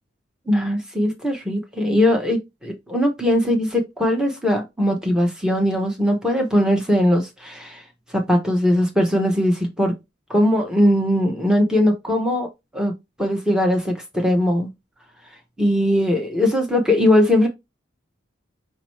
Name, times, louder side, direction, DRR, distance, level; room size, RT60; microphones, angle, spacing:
voice 1, 0.5-7.8 8.1-9.9 10.3-12.5 12.7-12.9 13.2-14.7 15.6-17.5, left 1 dB, 5° right, 0.9 m, -20 dB
5.4 x 2.9 x 3.0 m
head